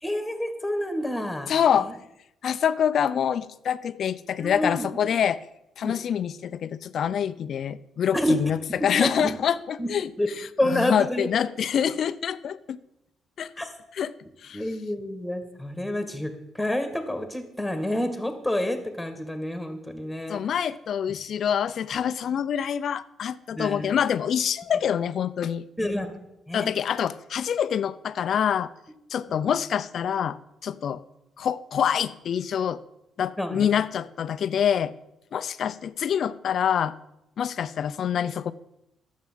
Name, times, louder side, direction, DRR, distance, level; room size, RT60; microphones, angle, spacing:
voice 1, 0.0-1.5 1.8-1.9 4.4-4.9 5.8-5.9 8.1-8.4 8.7-9.4 9.8-9.9 10.2-10.3 10.6-11.3 13.6-13.7 14.5-20.4 23.5-23.9 25.8-26.1 26.5-26.7 33.4-33.7, left 1 dB, 5° left, 7 dB, 2.1 m, -28 dB
voice 2, 1.5-1.9 2.4-5.4 5.8-10.1 10.4-12.8 13.4-13.5 13.9-14.1 14.4-14.6 20.3-25.6 26.5-28.7 29.1-30.4 30.6-31.0 31.4-32.8 33.2-34.9 35.3-36.9 37.4-38.5, left 8 dB, 60° left, 15 dB, 0.6 m, -26 dB
11.0 x 7.4 x 7.5 m, 0.87 s
cardioid pair, 90°, 0 cm